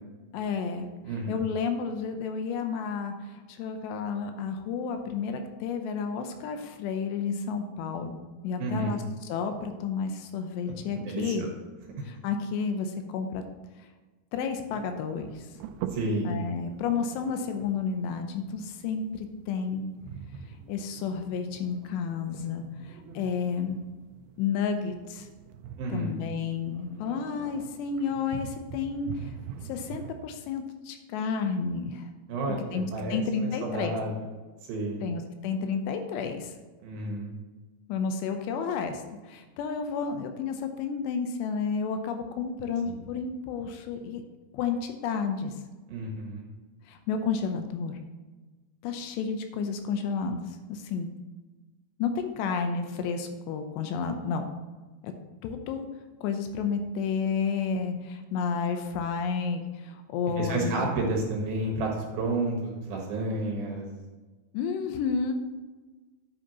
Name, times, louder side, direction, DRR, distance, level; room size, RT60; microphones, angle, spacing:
voice 1, 0.3-0.9 1.3-11.4 12.0-13.4 13.8-13.9 14.3-15.5 16.3-19.9 20.7-23.8 24.4-25.3 25.9-29.3 29.7-32.1 32.7-33.9 35.0-36.5 37.9-44.2 44.5-45.5 46.9-48.0 48.8-50.4 50.7-51.1 52.0-54.4 55.0-55.1 55.4-55.9 56.2-60.9 64.5-65.3, left 5 dB, 80° left, 6 dB, 2.8 m, -31 dB
voice 2, 1.1-1.4 8.6-9.0 11.0-11.5 15.9-16.4 25.8-26.2 32.3-34.1 34.7-35.0 36.8-37.3 42.9-43.0 45.9-46.5 60.4-63.9, right 2 dB, 65° right, 0 dB, 2.7 m, -31 dB
sound 1, 14.7-30.2, right 8 dB, 85° right, 2.7 m, -44 dB
9.9 x 9.2 x 2.9 m, 1.3 s
omnidirectional pair, 5.0 m